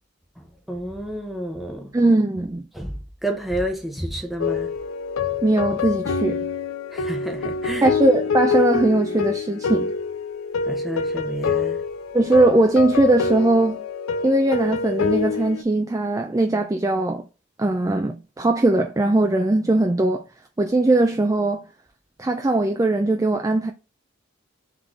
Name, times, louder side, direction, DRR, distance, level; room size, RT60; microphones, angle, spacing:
voice 1, 0.4-1.9 2.7-4.7 6.9-7.9 10.7-11.8, right 1 dB, ahead, 0.7 m, -30 dB
voice 2, 1.9-2.6 5.4-6.5 7.8-9.9 12.1-13.8 14.2-17.2 17.6-20.2 20.6-21.6 22.2-23.7, right 2 dB, 15° right, 0.3 m, -20 dB
sound 1, 4.4-15.6, left 5 dB, 80° left, 0.4 m, -26 dB
3.8 x 3.7 x 3.1 m
head